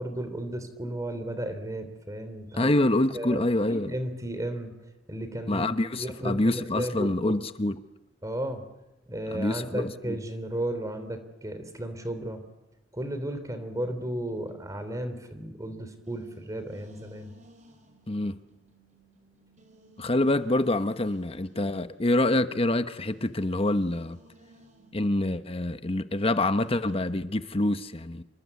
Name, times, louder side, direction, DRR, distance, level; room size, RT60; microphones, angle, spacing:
voice 1, 0.0-2.7 3.1-3.4 3.7-4.7 5.1-5.7 6.0-7.4 8.2-8.6 9.1-12.4 12.9-17.3, right 1 dB, 20° right, 3.2 m, -34 dB
voice 2, 2.5-3.9 5.5-7.8 9.3-10.2 18.1-18.4 20.0-24.2 24.9-28.2, left 1 dB, 30° left, 1.0 m, -26 dB
sound 1, 14.1-27.1, right 1 dB, 40° right, 5.0 m, -58 dB
27.5 x 24.0 x 8.3 m
head